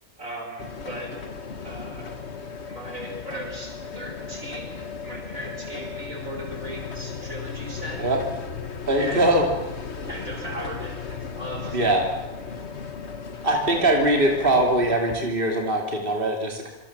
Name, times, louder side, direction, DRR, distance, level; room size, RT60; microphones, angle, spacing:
voice 1, 0.2-1.2 1.6-2.1 2.7-8.0 8.9-9.4 10.0-12.0, right 1 dB, 60° right, 1 dB, 6.4 m, -37 dB
sound 1, 0.6-15.0, left 5 dB, 50° left, 1.9 m, -36 dB
voice 2, 8.9-9.5 11.7-12.0 13.4-16.7, right 1 dB, 35° right, 1 dB, 3.2 m, -21 dB
26.5 x 25.5 x 7.5 m, 1.0 s
omnidirectional pair, 1.5 m